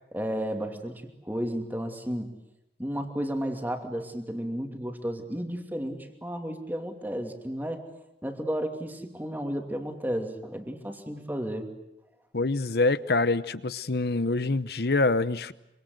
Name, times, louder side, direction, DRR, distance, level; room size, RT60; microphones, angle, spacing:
voice 1, 0.1-2.3 2.8-7.8 8.2-11.7, equal, 10° right, 4 dB, 2.7 m, -33 dB
voice 2, 12.3-15.5, left 3 dB, 60° left, 15 dB, 0.9 m, -25 dB
25.5 x 25.5 x 8.0 m, 0.87 s
head